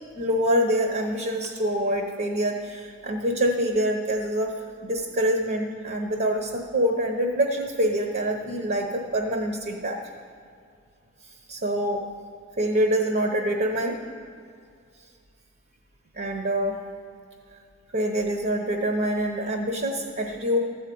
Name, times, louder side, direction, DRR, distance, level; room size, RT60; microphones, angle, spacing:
voice 1, 0.1-4.5 4.8-10.0 11.5-12.0 12.6-14.0 16.1-16.8 17.9-20.6, right 1 dB, 50° right, 3 dB, 0.9 m, -25 dB
14.0 x 4.9 x 8.5 m, 2.3 s
head